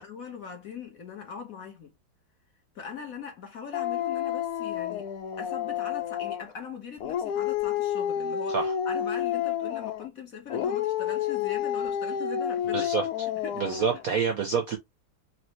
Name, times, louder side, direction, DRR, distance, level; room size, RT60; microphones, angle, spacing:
voice 1, 0.0-1.9 2.7-5.1 5.4-12.9 13.4-13.9, left 6 dB, 50° left, 1.2 m, -41 dB
Dog, 3.7-6.5 7.0-10.1 10.5-14.0, left 9 dB, 75° left, 0.8 m, -30 dB
voice 2, 12.7-13.1 13.6-14.8, right 6 dB, 65° right, 0.8 m, -27 dB
4.5 x 2.8 x 3.0 m
omnidirectional pair, 2.2 m